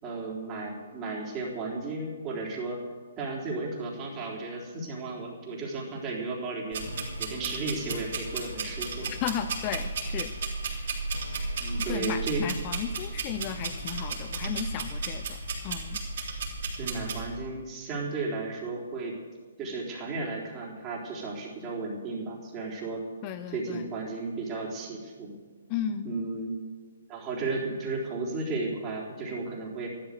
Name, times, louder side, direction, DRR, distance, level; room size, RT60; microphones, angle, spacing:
voice 1, 0.0-2.8 3.2-9.2 11.6-12.5 16.8-19.2 19.6-23.0 23.5-25.4 26.0-26.6 27.1-29.9, right 3 dB, 25° right, -2 dB, 3.8 m, -34 dB
sound 1, 6.7-17.2, right 3 dB, 60° right, 3.7 m, -34 dB
sound 2, 6.8-17.8, left 1 dB, 80° left, 1.9 m, -47 dB
voice 2, 9.1-10.3 10.8-10.9 11.9-16.0 23.2-23.8 25.7-26.1, left 9 dB, 30° left, 10 dB, 0.7 m, -35 dB
13.5 x 12.0 x 6.8 m, 1.5 s
figure-of-eight pair, 135°, 0 cm